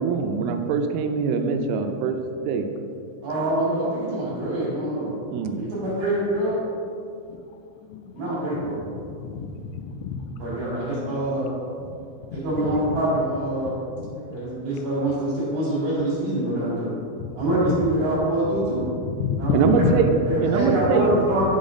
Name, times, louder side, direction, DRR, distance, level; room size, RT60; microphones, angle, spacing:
voice 1, 0.0-2.7 5.3-5.6 19.5-20.2 20.4-21.1, right 6 dB, 85° right, 5 dB, 3.1 m, -23 dB
voice 2, 3.2-5.1 5.6-6.6 8.1-8.8 10.4-11.5 12.3-13.7 14.3-16.9 17.4-18.8 19.4-19.8 20.3-21.6, right 1 dB, 50° right, -10 dB, 3.3 m, -25 dB
voice 3, 7.9-8.4 8.7-10.4 14.0-14.1 17.2-17.3 17.7-17.8 19.1-19.9 20.6-20.7, left 6 dB, 85° left, 6 dB, 2.6 m, -29 dB
11.5 x 4.1 x 5.0 m, 2.5 s
omnidirectional pair, 5.8 m